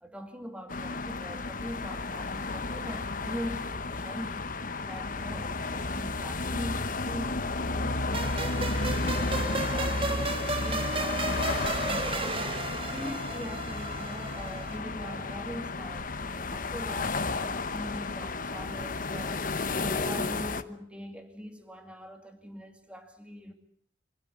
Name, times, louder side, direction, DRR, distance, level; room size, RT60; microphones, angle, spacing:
voice 1, 0.0-4.5 4.8-8.9 9.2-12.6 12.9-19.4 19.8-23.5, equal, 5° right, 2.3 m, -42 dB
sound 1, 0.7-20.6, left 3 dB, 45° left, 1.1 m, -32 dB
sound 2, 8.1-14.8, right 3 dB, 30° right, 1.6 m, -34 dB
25.0 x 15.0 x 9.8 m
head